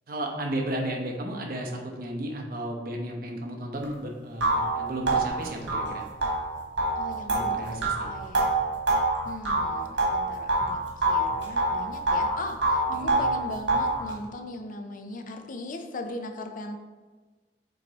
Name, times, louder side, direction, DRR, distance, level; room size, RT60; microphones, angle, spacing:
voice 1, 0.1-6.0 7.2-8.0 12.9-13.2, right 1 dB, 55° right, 1 dB, 1.0 m, -33 dB
sound 1, 3.8-3.9 4.4-10.7 11.0-12.3 12.6-14.0, right 2 dB, 90° right, 1.5 m, -25 dB
voice 2, 7.0-8.5 9.3-10.8 11.1-16.8, left 2 dB, 50° left, 5 dB, 0.6 m, -39 dB
7.4 x 3.2 x 4.0 m, 1.3 s
head